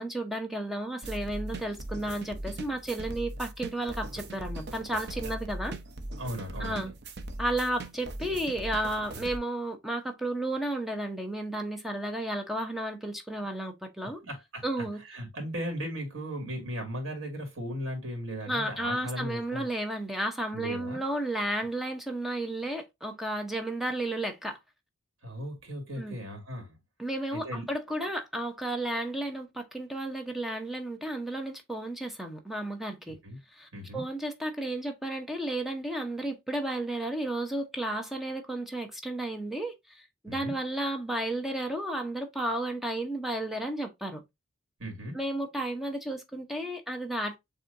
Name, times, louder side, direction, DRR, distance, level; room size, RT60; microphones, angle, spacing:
voice 1, 0.0-5.7 6.6-6.9 7.4-14.2 14.6-15.0 18.5-24.6 26.0-26.2 27.0-33.2 33.5-44.2 45.1-47.4, right 1 dB, ahead, 0.8 m, -33 dB
sound 1, 1.0-9.4, right 1 dB, 55° right, 0.7 m, -39 dB
voice 2, 6.2-6.9 14.0-19.7 20.5-21.0 25.2-26.8 27.3-27.7 33.2-33.4 33.7-34.0 40.3-40.6 44.8-45.2, equal, 80° right, 2.0 m, -37 dB
7.3 x 2.8 x 2.6 m
head